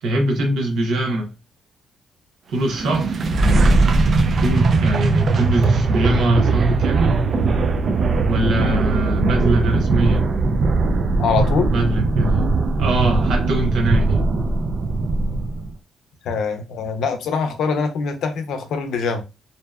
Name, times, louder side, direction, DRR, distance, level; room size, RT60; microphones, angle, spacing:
voice 1, 0.0-1.3 2.5-3.2 4.4-7.2 8.3-10.2 11.7-12.5 12.8-14.2, right 1 dB, 75° right, 0.7 m, -22 dB
sound 1, 2.6-15.7, right 3 dB, 50° right, 0.4 m, -19 dB
voice 2, 11.2-11.7 16.2-19.2, left 5 dB, 75° left, 0.5 m, -23 dB
2.7 x 2.1 x 2.2 m
cardioid pair, 90°, 0 cm